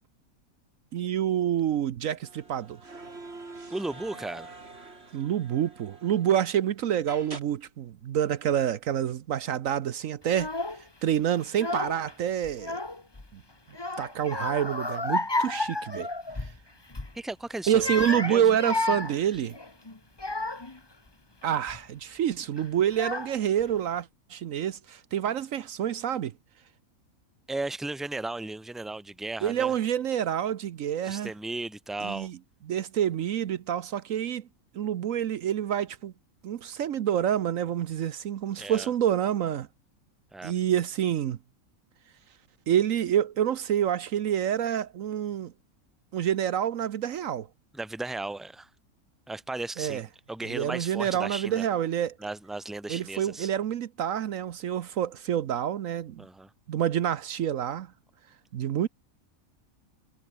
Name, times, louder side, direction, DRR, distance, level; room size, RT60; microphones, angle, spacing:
voice 1, 0.9-2.8 5.1-10.5 11.0-12.8 13.3-13.4 14.0-16.1 17.7-19.5 21.4-26.3 29.4-31.3 32.0-32.4 32.7-34.5 34.7-36.1 36.4-39.7 40.4-41.4 42.7-45.5 46.1-47.5 49.8-50.0 50.5-52.2 52.9-56.3 56.7-57.9 58.5-58.9, right 10 dB, 70° right, 1.2 m, -27 dB
sound 1, 2.2-6.6 7.1-7.4, right 3 dB, 45° right, 3.3 m, -45 dB
voice 2, 3.7-4.5 17.1-18.5 27.5-29.7 31.0-32.3 38.6-38.9 40.3-40.5 47.7-48.7 49.3-51.6 52.2-53.5 56.2-56.5, right 2 dB, ahead, 1.3 m, -35 dB
Child speech kid speaking / Crying sobbing, 10.3-10.8 11.4-12.1 12.4-13.3 13.7-16.6 16.9-17.2 17.7-20.8 21.4-21.8 22.6-22.7 22.9-23.6, left 2 dB, 20° left, 1.5 m, -32 dB
omnidirectional pair, 1.5 m